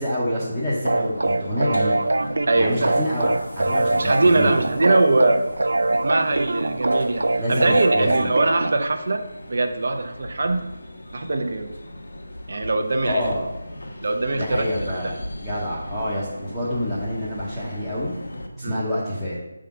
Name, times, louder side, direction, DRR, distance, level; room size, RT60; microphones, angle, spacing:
voice 1, 0.0-2.0 2.5-4.6 7.4-8.3 13.0-13.4 14.3-15.2 15.4-18.1 18.6-19.4, equal, ahead, -15 dB, 0.8 m, -27 dB
sound 1, 0.8-8.8, right 2 dB, 80° right, 0.4 m, -23 dB
sound 2, 0.9-18.5, left 1 dB, 70° left, 1.3 m, -38 dB
voice 2, 2.5-3.0 4.0-5.4 5.9-10.6 11.1-11.7 12.5-13.3 14.0-14.9 18.5-18.8, right 2 dB, 45° right, 6 dB, 0.7 m, -22 dB
6.5 x 3.7 x 5.8 m, 0.96 s
figure-of-eight pair, 175°, 0 cm